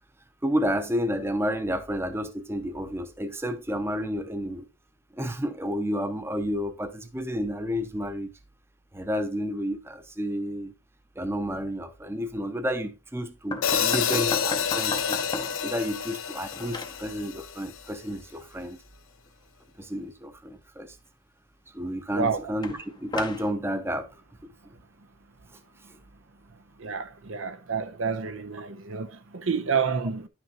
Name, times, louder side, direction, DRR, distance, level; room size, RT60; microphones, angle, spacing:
voice 1, 0.4-4.6 5.1-8.3 8.9-10.7 11.2-15.2 15.6-18.8 19.8-21.0 21.7-24.1 24.4-24.5, equal, 10° right, 0.7 m, -31 dB
sound 1, 13.5-15.7 16.1-17.0 22.6-23.5, left 3 dB, 20° left, 0.6 m, -34 dB
Hi-hat, 13.6-17.8, left 8 dB, 85° left, 0.8 m, -28 dB
voice 2, 22.1-22.5 26.8-30.3, right 5 dB, 80° right, 0.8 m, -29 dB
10.5 x 6.0 x 2.9 m
head